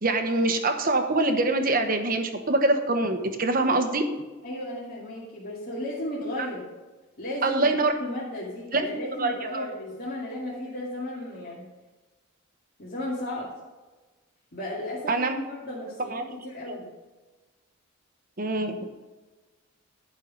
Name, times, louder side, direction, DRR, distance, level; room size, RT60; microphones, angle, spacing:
voice 1, 0.0-4.0 7.4-7.9 8.7-9.6 15.1-15.4 16.1-16.2 16.7-16.8 18.4-18.8, right 2 dB, 40° right, 6 dB, 1.0 m, -24 dB
voice 2, 4.4-6.7 7.2-7.7 8.0-11.7 12.8-13.5 14.5-16.9, left 1 dB, 45° left, -7 dB, 2.1 m, -35 dB
11.0 x 5.5 x 5.1 m, 1.2 s
head